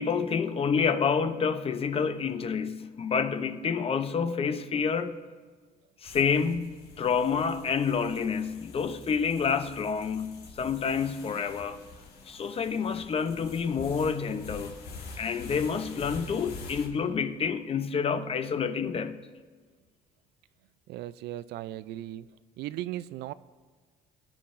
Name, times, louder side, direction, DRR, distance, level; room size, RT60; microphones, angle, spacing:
voice 1, 0.0-5.2 6.0-6.7 7.0-11.8 12.3-14.8 15.2-19.2, left 6 dB, 35° left, 0.7 m, -28 dB
sound 1, 6.0-16.9, left 3 dB, 75° left, 1.7 m, -46 dB
voice 2, 20.9-22.3 22.6-23.3, right 14 dB, 75° right, 0.4 m, -37 dB
22.5 x 10.0 x 2.6 m
cardioid pair, 110°, 17 cm